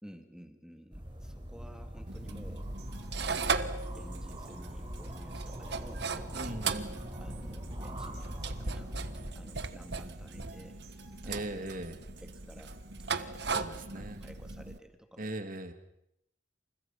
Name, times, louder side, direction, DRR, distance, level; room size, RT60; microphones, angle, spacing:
voice 1, 0.0-2.7 3.2-3.6 3.9-6.6 7.2-10.8 11.2-11.7 12.2-12.8 13.1-13.4 13.9-15.3, equal, 5° right, 6 dB, 2.3 m, -53 dB
sound 1, 0.9-9.3, equal, 25° right, 4.6 m, -42 dB
sound 2, 2.1-14.8, right 4 dB, 65° right, 1.5 m, -38 dB
sound 3, 2.8-13.5, right 5 dB, 80° right, 5.9 m, -59 dB
voice 2, 6.3-7.0 11.2-12.0 13.5-14.2 15.2-15.7, right 1 dB, 50° right, 7 dB, 2.8 m, -39 dB
29.5 x 28.5 x 5.9 m, 0.79 s
head